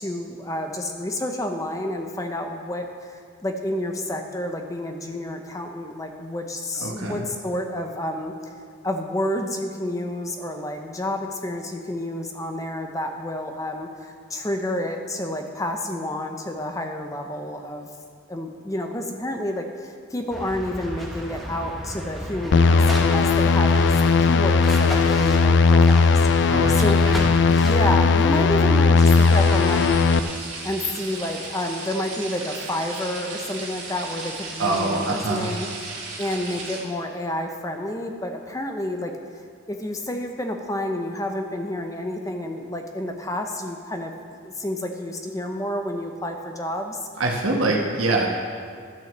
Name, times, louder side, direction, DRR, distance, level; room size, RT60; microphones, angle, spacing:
voice 1, 0.0-8.3 8.8-17.9 18.3-27.0 27.6-35.7 36.2-39.1 39.7-44.1 44.4-47.1, left 1 dB, 15° left, 4 dB, 0.7 m, -29 dB
voice 2, 6.8-7.2 22.5-23.0 26.5-27.2 34.6-35.5 47.2-48.3, right 2 dB, 85° right, -2 dB, 1.2 m, -25 dB
sound 1, 20.3-29.8, equal, ahead, 1.2 m, -34 dB
sound 2, 22.5-30.2, left 4 dB, 55° left, 0.4 m, -17 dB
sound 3, 28.9-36.8, right 3 dB, 40° right, 2.7 m, -36 dB
11.5 x 6.3 x 7.3 m, 2.3 s
head